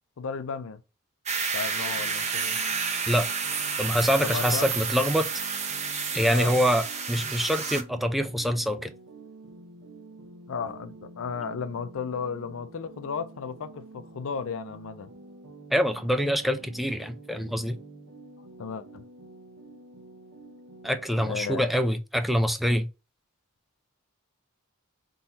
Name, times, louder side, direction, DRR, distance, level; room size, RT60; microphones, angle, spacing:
voice 1, 0.2-0.8 1.5-2.6 4.2-4.7 6.3-6.5 10.5-15.1 18.6-19.0 21.2-21.7, left 6 dB, 65° left, 0.5 m, -34 dB
sound 1, 1.3-7.8, right 5 dB, 30° right, 0.8 m, -30 dB
sound 2, 1.7-21.3, right 2 dB, 70° right, 0.7 m, -48 dB
voice 2, 3.8-5.3 6.1-8.9 15.7-17.8 20.8-22.9, equal, ahead, 0.4 m, -25 dB
3.8 x 2.8 x 4.3 m
head